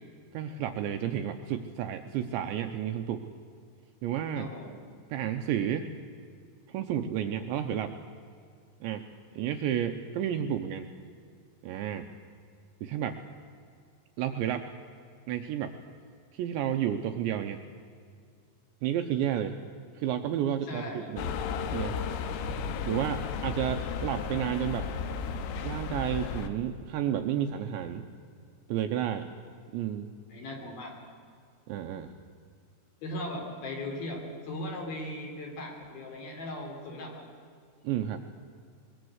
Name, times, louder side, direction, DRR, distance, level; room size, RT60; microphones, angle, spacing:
voice 1, 0.3-3.2 4.0-4.5 5.1-5.9 6.7-7.9 8.8-9.1 9.4-10.9 11.6-12.1 12.8-13.2 14.2-14.7 15.3-15.7 16.3-17.6 18.8-19.6 20.0-21.3 21.7-22.0 22.9-24.9 25.6-28.1 28.7-29.3 29.7-30.1 31.7-32.1 37.8-38.3, right 10 dB, 80° right, 7 dB, 2.7 m, -31 dB
voice 2, 4.4-4.8 20.6-21.1 30.3-31.0 33.0-37.3, left 1 dB, 50° left, 2 dB, 4.6 m, -38 dB
sound 1, 21.2-26.5, left 6 dB, 80° left, 3.8 m, -34 dB
22.5 x 21.5 x 8.0 m, 2.2 s
omnidirectional pair, 5.9 m